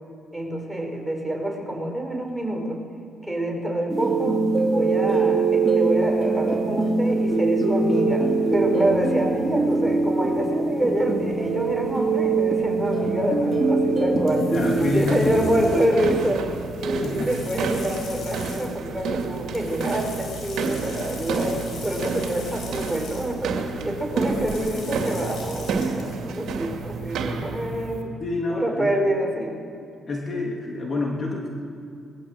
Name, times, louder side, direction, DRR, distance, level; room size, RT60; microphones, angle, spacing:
voice 1, 0.3-2.8 3.2-4.4 4.7-14.5 14.9-16.5 16.8-28.1 28.5-29.6, right 1 dB, 5° right, 1 dB, 5.0 m, -27 dB
sound 1, 3.9-15.7, right 3 dB, 20° right, 3.3 m, -23 dB
sound 2, 11.3-26.1, left 3 dB, 70° left, 5.6 m, -42 dB
voice 2, 14.4-15.4 17.0-17.3 28.2-28.9 30.1-31.5, left 2 dB, 40° left, 0 dB, 3.0 m, -27 dB
sound 3, 14.6-28.0, right 5 dB, 80° right, 2.4 m, -30 dB
21.0 x 18.5 x 7.8 m, 2.5 s
cardioid pair, 90°, 0 cm